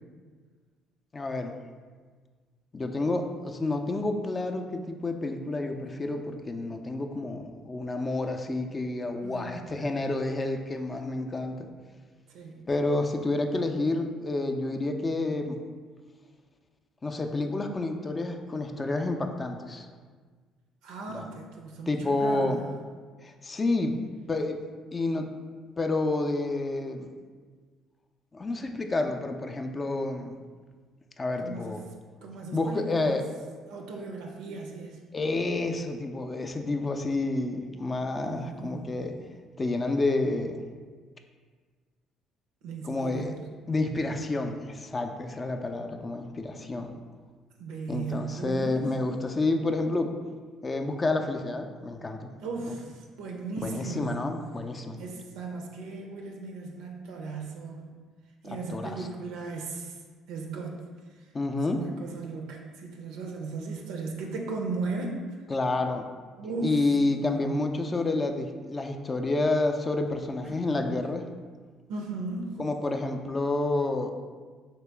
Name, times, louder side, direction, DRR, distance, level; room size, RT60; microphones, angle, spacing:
voice 1, 1.1-1.5 2.7-11.7 12.7-15.6 17.0-19.9 21.1-21.3 21.9-22.6 23.2-24.0 24.3-24.6 24.9-25.3 25.8-27.1 28.3-30.4 31.2-31.8 32.5-33.2 35.1-39.1 39.6-40.6 42.8-43.3 43.7-47.0 47.9-50.1 50.6-52.3 52.7-52.8 53.6-55.0 58.4-59.1 61.3-61.9 65.5-66.1 66.6-71.2 72.6-74.1, left 2 dB, 30° left, 5 dB, 0.4 m, -29 dB
voice 2, 9.2-9.7 12.3-12.6 20.8-22.7 31.4-31.8 32.2-33.2 33.7-35.0 38.2-39.0 42.6-43.3 47.6-48.8 52.4-54.2 55.0-57.9 58.4-59.9 60.3-60.8 61.7-65.2 66.4-66.8 67.3-67.6 70.5-70.7 71.9-72.6, right 3 dB, 80° right, 1 dB, 0.4 m, -36 dB
3.0 x 2.8 x 3.4 m, 1.5 s
supercardioid pair, 65°, 0 cm